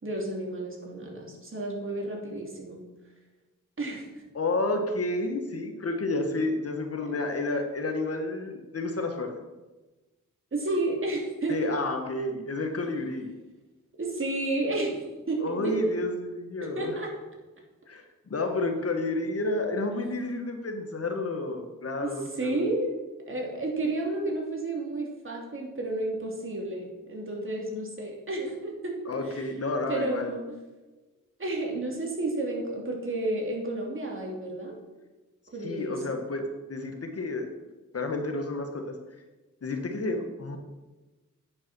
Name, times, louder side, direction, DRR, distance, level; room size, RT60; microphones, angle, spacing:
voice 1, 0.0-2.8 3.8-4.1 10.5-11.6 14.0-16.0 16.7-17.1 22.0-23.0 23.3-28.9 29.3-29.4 29.9-30.6 31.4-34.8 35.5-36.0, right 2 dB, 40° right, -1 dB, 3.0 m, -31 dB
voice 2, 4.3-9.3 11.5-13.3 15.4-17.0 17.9-22.7 29.1-30.3 35.6-37.5 37.9-39.0 39.6-40.6, left 2 dB, 50° left, 4 dB, 1.5 m, -30 dB
9.6 x 6.1 x 6.2 m, 1.2 s
cardioid pair, 75°, 32 cm